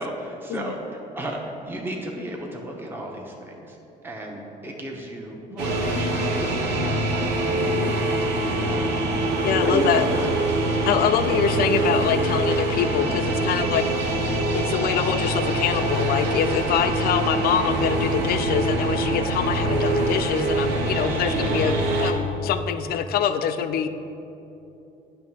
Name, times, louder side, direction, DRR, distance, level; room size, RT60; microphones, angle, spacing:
voice 1, 0.0-1.4 1.7-3.8 4.0-8.0 8.6-8.9 9.6-10.4 20.9-21.1, right 1 dB, 10° right, -1 dB, 0.8 m, -34 dB
sound 1, 5.6-22.1, right 2 dB, 90° right, 1.0 m, -24 dB
voice 2, 9.4-10.1 10.9-23.9, left 8 dB, 65° left, 10 dB, 0.4 m, -25 dB
9.0 x 3.2 x 6.1 m, 2.9 s
cardioid pair, 110°, 17 cm